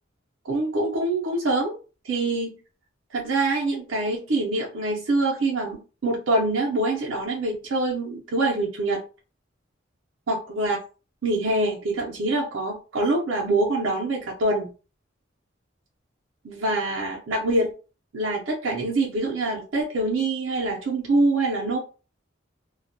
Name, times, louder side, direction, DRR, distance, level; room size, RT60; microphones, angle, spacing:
voice 1, 0.4-1.8 2.0-2.5 3.1-9.0 10.3-10.8 11.2-14.7 16.4-17.7 18.1-21.8, right 2 dB, 85° right, -3 dB, 0.6 m, -25 dB
2.3 x 2.1 x 2.6 m, 0.34 s
head